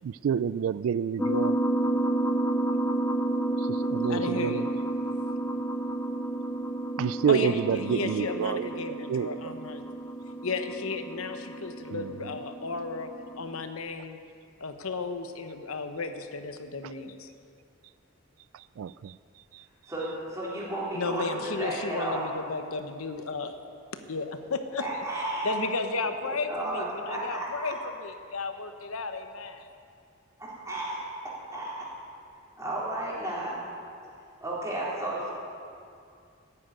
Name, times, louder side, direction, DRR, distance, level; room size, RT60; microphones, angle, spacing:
voice 1, 0.0-1.6 3.6-4.7 7.0-9.5 11.9-12.4 16.8-16.9 18.5-19.2 19.5-19.6, right 7 dB, 70° right, 16 dB, 0.3 m, -29 dB
sound 1, 1.2-13.6, right 1 dB, 10° left, 0.9 m, -31 dB
voice 2, 4.1-4.8 7.3-9.8 10.4-13.1 13.4-14.2 14.6-17.3 20.9-23.5 23.9-24.8 25.4-29.7, left 3 dB, 80° left, 7 dB, 1.0 m, -34 dB
voice 3, 19.9-22.3 24.8-25.6 26.2-27.7 30.4-31.0 31.2-31.9 32.6-33.6 34.4-35.3, right 1 dB, 15° right, -6 dB, 3.8 m, -33 dB
13.5 x 9.6 x 9.0 m, 2.4 s
head